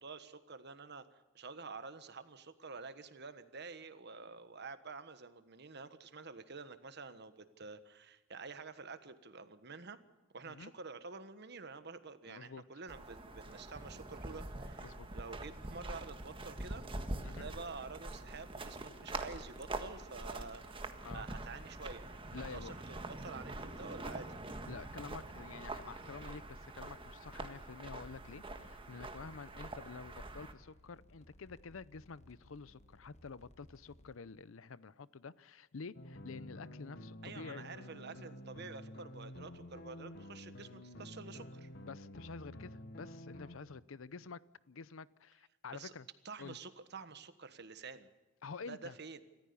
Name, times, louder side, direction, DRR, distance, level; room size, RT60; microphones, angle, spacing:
voice 1, 0.0-10.0 10.3-16.8 17.2-22.1 22.5-24.4 37.2-41.7 45.7-45.9 46.2-48.1 48.7-49.2, right 4 dB, 55° right, 11 dB, 1.4 m, -49 dB
voice 2, 12.3-12.6 14.8-15.1 17.2-17.5 21.0-21.3 22.3-22.7 24.7-37.7 41.8-44.4 44.7-46.1 46.4-46.6 48.4-49.0, left 5 dB, 85° left, 19 dB, 0.6 m, -49 dB
sound 1, 12.9-30.5, right 2 dB, 25° right, 1.5 m, -45 dB
sound 2, 27.8-34.2, left 1 dB, 35° left, 1.4 m, -62 dB
sound 3, 35.9-43.6, left 1 dB, 55° left, 1.3 m, -50 dB
26.5 x 14.5 x 6.9 m, 1.2 s
head